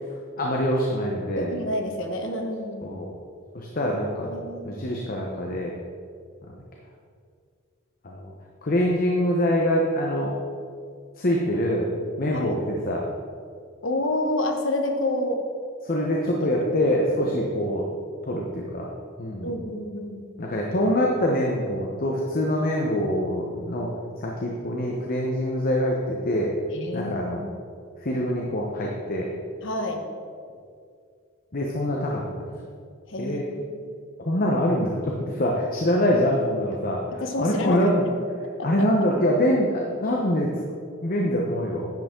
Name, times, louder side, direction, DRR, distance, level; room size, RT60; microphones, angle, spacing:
voice 1, 0.4-1.5 2.8-3.1 3.5-4.3 4.6-5.7 6.4-6.6 8.0-8.3 8.6-10.3 11.2-11.9 12.2-13.0 15.8-17.9 18.2-18.9 19.2-19.5 20.4-23.9 24.2-26.5 26.9-27.4 28.0-29.3 31.5-32.4 33.2-33.4 34.2-37.0 37.4-38.1 38.6-40.5 41.0-41.9, equal, 45° left, -1 dB, 0.9 m, -24 dB
voice 2, 1.4-2.9 4.3-4.7 12.3-12.6 13.8-15.4 17.2-17.3 19.4-20.2 26.7-27.4 29.6-30.0 33.1-33.6 37.2-37.9 38.6-38.7, left 1 dB, 65° left, 4 dB, 1.1 m, -28 dB
10.5 x 7.9 x 3.7 m, 2.2 s
head